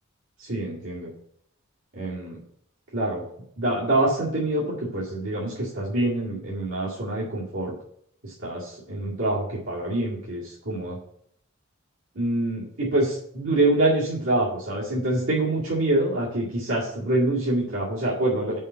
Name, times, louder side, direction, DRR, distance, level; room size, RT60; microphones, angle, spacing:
voice 1, 0.4-1.1 1.9-2.4 2.9-3.2 3.6-7.7 8.2-11.0 12.2-18.6, right 1 dB, 70° right, -7 dB, 2.1 m, -25 dB
5.6 x 5.4 x 6.8 m, 0.68 s
head